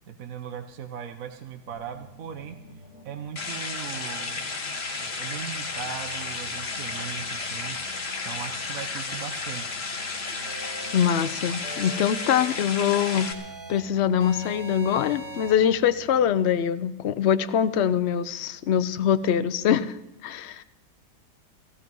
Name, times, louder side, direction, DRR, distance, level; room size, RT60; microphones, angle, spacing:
voice 1, 0.1-4.5 4.9-9.8, right 8 dB, 55° right, 7 dB, 1.2 m, -39 dB
sound 1, 1.7-16.3, equal, 80° right, 4.3 m, -50 dB
sound 2, 3.4-13.3, left 4 dB, 35° left, 1.6 m, -33 dB
sound 3, 10.4-11.2 11.6-12.5 12.9-13.8 14.2-15.5, right 1 dB, 40° right, 2.8 m, -40 dB
voice 2, 10.9-13.3 13.7-20.0 20.2-20.6, left 9 dB, 65° left, 13 dB, 0.6 m, -23 dB
16.0 x 15.5 x 5.3 m, 0.95 s
omnidirectional pair, 1.9 m